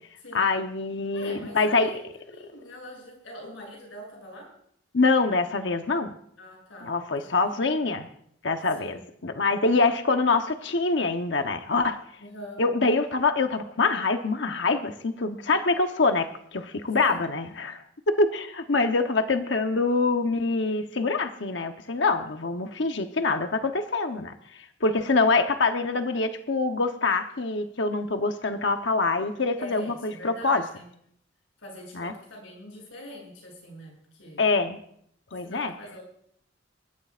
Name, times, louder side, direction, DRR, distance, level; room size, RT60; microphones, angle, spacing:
voice 1, 0.3-1.9 4.9-6.1 6.8-8.1 8.4-12.0 12.6-17.8 18.2-24.3 24.8-30.6 31.9-32.1 34.4-34.8 35.3-35.7, left 3 dB, 65° left, 7 dB, 0.9 m, -25 dB
voice 2, 1.1-4.5 6.4-7.6 8.8-9.0 12.2-12.6 17.0-17.3 29.6-30.9 31.6-33.9 34.2-34.5 35.4-36.0, equal, 85° left, -2 dB, 7.8 m, -43 dB
26.0 x 13.5 x 2.5 m, 0.68 s
head